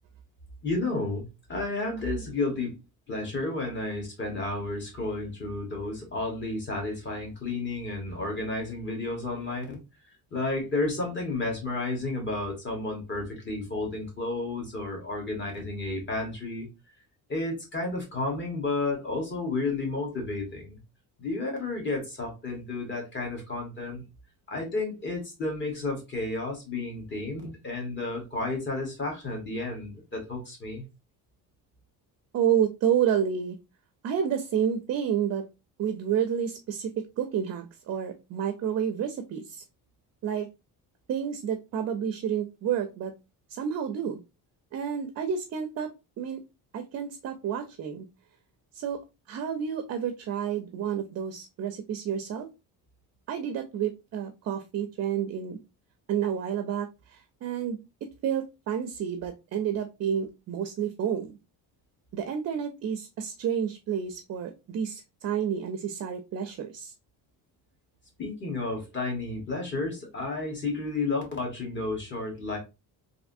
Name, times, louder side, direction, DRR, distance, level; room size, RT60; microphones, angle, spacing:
voice 1, 0.6-2.8 3.1-9.8 10.3-16.7 17.3-20.8 21.2-24.0 24.5-30.8 68.2-72.6, left 2 dB, 30° left, 1.3 m, -32 dB
voice 2, 32.3-33.6 34.0-35.5 35.8-36.9 37.2-39.6 40.2-40.5 41.1-43.1 43.5-44.2 44.7-45.9 46.2-46.4 46.7-48.0 48.7-49.0 49.3-52.5 53.3-55.6 56.1-57.8 58.2-61.4 62.1-66.9, right 8 dB, 45° right, 0.4 m, -30 dB
3.3 x 2.6 x 2.5 m
cardioid pair, 155°, 39 cm